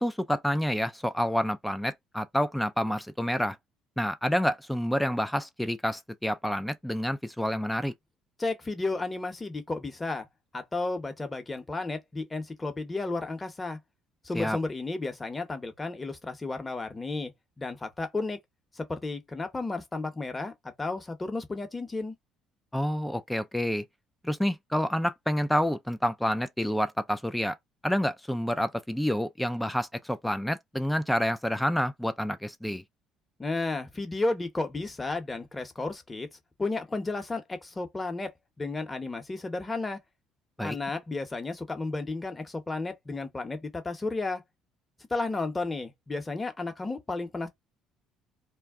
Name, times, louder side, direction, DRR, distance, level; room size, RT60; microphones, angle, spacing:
voice 1, 0.0-3.6 4.0-7.9 14.3-14.6 22.7-23.8 24.2-27.5 27.8-32.8 40.6-40.8, equal, 5° left, 0.3 m, -28 dB
voice 2, 8.4-10.3 10.5-13.8 14.2-17.3 17.6-18.4 18.7-22.1 33.4-36.3 36.6-38.3 38.6-40.0 40.6-44.4 45.1-47.5, left 3 dB, 20° left, 0.9 m, -33 dB
2.3 x 2.1 x 3.5 m
supercardioid pair, 85°, 0 cm